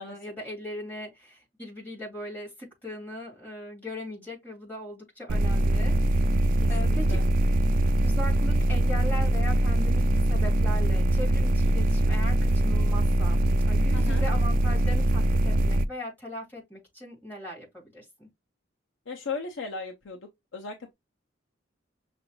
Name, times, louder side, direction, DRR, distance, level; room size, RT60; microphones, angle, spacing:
voice 1, 0.0-6.3 6.7-7.2 8.0-18.3, equal, 10° left, 2.5 m, -39 dB
sound 1, 5.3-15.9, right 1 dB, 45° right, 0.3 m, -23 dB
voice 2, 6.6-7.3 13.9-14.2 19.1-20.9, left 4 dB, 80° left, 0.7 m, -37 dB
6.1 x 2.5 x 3.0 m
head